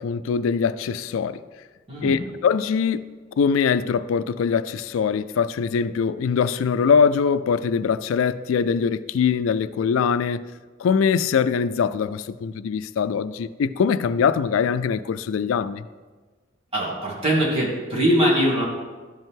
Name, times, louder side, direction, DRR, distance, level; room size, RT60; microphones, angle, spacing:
voice 1, 0.0-1.4 2.0-3.1 3.4-10.5 10.8-15.8, left 6 dB, 85° left, 0.3 m, -22 dB
voice 2, 1.9-2.2 16.7-18.6, equal, 30° right, 2.4 m, -21 dB
12.5 x 5.4 x 3.7 m
head